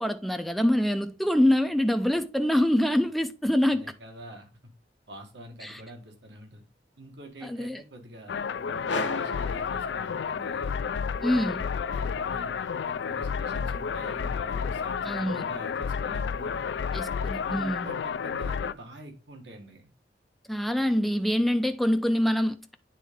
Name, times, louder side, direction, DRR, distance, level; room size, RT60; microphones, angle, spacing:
voice 1, 0.0-3.8 5.6-5.8 7.4-7.8 11.2-11.6 15.0-15.5 16.9-17.9 20.5-22.8, left 1 dB, ahead, 0.4 m, -25 dB
voice 2, 3.7-4.7 5.1-6.7 7.0-10.8 11.9-16.6 17.3-19.9, right 1 dB, 70° right, 1.7 m, -46 dB
sound 1, 8.3-18.7, left 6 dB, 65° left, 0.4 m, -31 dB
sound 2, 8.9-10.6, left 3 dB, 85° left, 1.0 m, -34 dB
9.3 x 3.7 x 3.6 m
head